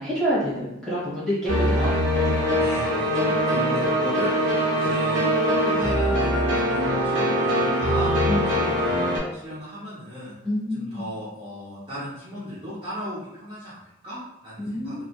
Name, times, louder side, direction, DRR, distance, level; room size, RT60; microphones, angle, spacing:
voice 1, 0.0-2.0 8.3-8.5 10.4-11.0 14.6-15.0, equal, ahead, -9 dB, 0.9 m, -27 dB
sound 1, 1.5-9.2, equal, 75° right, 0.7 m, -22 dB
voice 2, 2.6-8.1 8.4-8.9 9.3-10.3 10.7-15.0, equal, 25° right, -10 dB, 0.6 m, -36 dB
2.3 x 2.1 x 2.8 m, 0.85 s
head